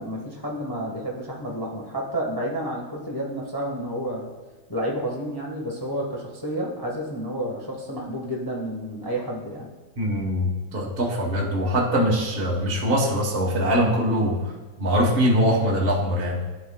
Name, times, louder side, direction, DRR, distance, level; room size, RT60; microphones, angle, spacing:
voice 1, 0.0-4.3 4.7-9.7, equal, 25° left, -2 dB, 0.5 m, -30 dB
voice 2, 10.0-14.5 14.8-16.4, equal, 35° right, -3 dB, 1.2 m, -22 dB
11.5 x 5.5 x 2.2 m, 1.3 s
omnidirectional pair, 2.1 m